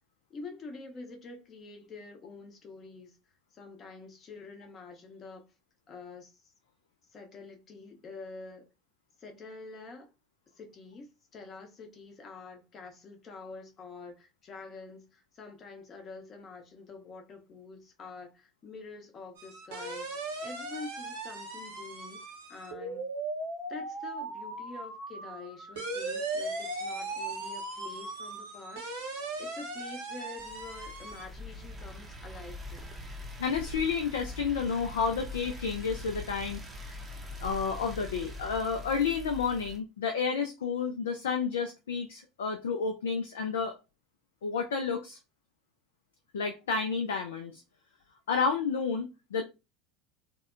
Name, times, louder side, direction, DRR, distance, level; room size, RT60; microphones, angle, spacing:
voice 1, 0.3-3.2 3.5-5.4 5.9-6.5 7.1-8.7 9.2-10.1 10.6-20.1 20.4-23.1 23.7-32.9, left 3 dB, 35° left, 0.7 m, -47 dB
sound 1, 19.4-31.3, right 2 dB, 70° right, 0.7 m, -38 dB
sound 2, 30.4-39.8, left 1 dB, 20° right, 0.6 m, -42 dB
voice 2, 33.4-37.0 37.4-43.8 44.4-45.2 46.3-47.6 48.3-49.4, left 5 dB, 75° left, 0.3 m, -31 dB
2.6 x 2.1 x 2.4 m
figure-of-eight pair, 70°, 0 cm